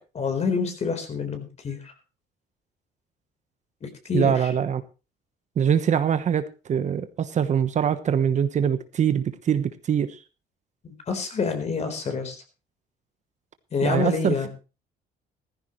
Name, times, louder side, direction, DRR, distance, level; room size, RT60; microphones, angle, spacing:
voice 1, 0.1-1.9 3.8-4.5 10.8-12.4 13.7-14.5, left 5 dB, 40° left, 6 dB, 4.2 m, -27 dB
voice 2, 4.1-4.8 5.6-10.2 13.8-14.3, right 8 dB, 45° right, 11 dB, 1.2 m, -23 dB
16.0 x 14.5 x 3.2 m, 0.32 s
cardioid pair, 110°, 17 cm